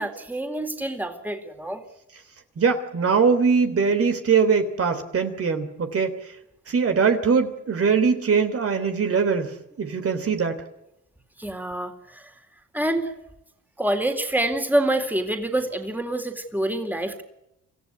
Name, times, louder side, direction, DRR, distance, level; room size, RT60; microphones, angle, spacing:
voice 1, 0.0-1.8 11.4-12.3 12.7-13.1 13.8-17.2, right 1 dB, 5° right, 5 dB, 3.8 m, -26 dB
voice 2, 2.6-6.2 6.7-10.6, right 5 dB, 50° right, 7 dB, 3.4 m, -22 dB
27.0 x 15.0 x 9.6 m, 0.88 s
cardioid pair, 90°, 30 cm